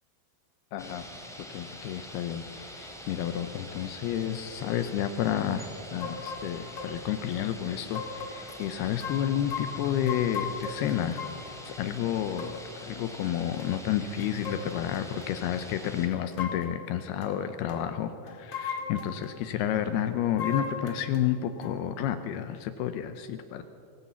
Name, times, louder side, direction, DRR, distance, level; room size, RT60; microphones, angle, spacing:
voice 1, 0.7-1.1 1.5-11.2 11.6-23.6, left 10 dB, 90° left, 9 dB, 2.3 m, -31 dB
sound 1, 0.8-16.1, equal, ahead, 2.0 m, -45 dB
sound 2, 6.0-6.5 6.7-6.9 7.3-7.4 7.9-8.6 9.0-11.5 12.4-12.6 13.1-13.3 13.6-13.8 14.2-15.4 16.1-16.8 17.2-17.4 17.7-17.9 18.3-19.4 20.4-21.3 21.6-21.8, left 5 dB, 60° left, 1.2 m, -37 dB
23.0 x 18.5 x 8.4 m, 2.6 s
omnidirectional pair, 5.6 m